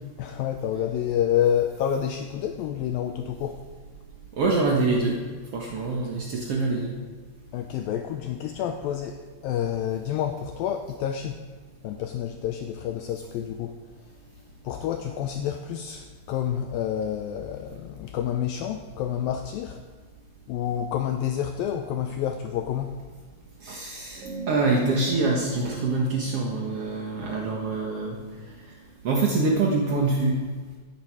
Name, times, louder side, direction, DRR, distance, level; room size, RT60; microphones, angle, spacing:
voice 1, 0.2-3.6 7.5-11.4 11.8-13.8 14.6-19.8 20.5-23.0, left 9 dB, 90° left, 6 dB, 2.0 m, -28 dB
voice 2, 4.4-5.2 5.5-6.9 23.6-28.2 29.0-30.4, right 3 dB, 75° right, -1 dB, 1.3 m, -25 dB
sound 1, 24.2-29.0, right 4 dB, 30° right, 1.3 m, -40 dB
15.5 x 10.0 x 4.8 m, 1.4 s
omnidirectional pair, 4.8 m